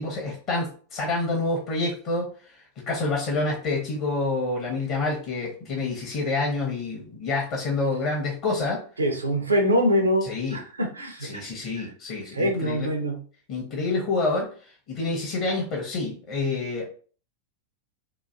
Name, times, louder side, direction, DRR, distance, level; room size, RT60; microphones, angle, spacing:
voice 1, 0.0-2.3 2.8-8.8 10.2-10.6 11.2-12.9 13.5-16.9, left 3 dB, 45° left, -2 dB, 1.0 m, -28 dB
voice 2, 9.0-10.3 10.5-11.4 11.7-11.9 12.3-13.2, equal, 80° right, 4 dB, 0.7 m, -24 dB
3.0 x 2.4 x 2.5 m, 0.41 s
figure-of-eight pair, 90°, 0 cm